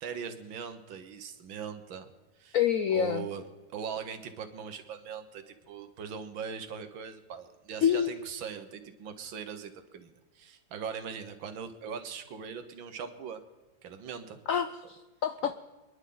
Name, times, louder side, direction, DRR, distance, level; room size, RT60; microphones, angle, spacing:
voice 1, 0.0-2.1 2.4-2.6 2.9-3.4 3.7-13.4 13.8-14.4, right 7 dB, 90° right, 8 dB, 1.9 m, -40 dB
voice 2, 2.5-3.3 7.8-8.1 14.5-15.5, left 9 dB, 75° left, 9 dB, 0.7 m, -27 dB
27.0 x 11.0 x 3.9 m, 1.2 s
omnidirectional pair, 2.1 m